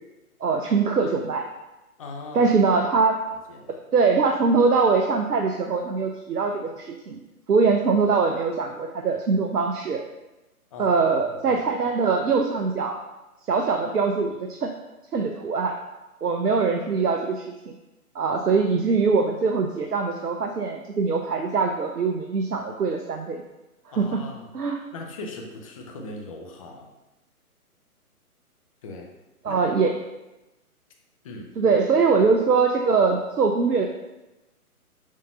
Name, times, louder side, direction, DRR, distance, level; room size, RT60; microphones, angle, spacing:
voice 1, 0.4-1.4 2.3-3.2 3.9-7.2 7.5-10.0 10.8-13.0 13.5-14.7 15.1-15.8 16.2-17.8 18.1-23.4 24.0-24.2 24.5-24.8 29.4-29.9 31.6-33.9, right 4 dB, 90° right, 3 dB, 0.7 m, -22 dB
voice 2, 2.0-2.5 3.5-3.8 10.7-11.0 11.4-11.6 23.9-24.5 24.9-26.9 28.8-29.1 29.5-29.6 31.2-31.7, left 2 dB, 25° left, 1 dB, 0.6 m, -39 dB
6.3 x 2.8 x 5.4 m, 1.0 s
figure-of-eight pair, 135°, 45 cm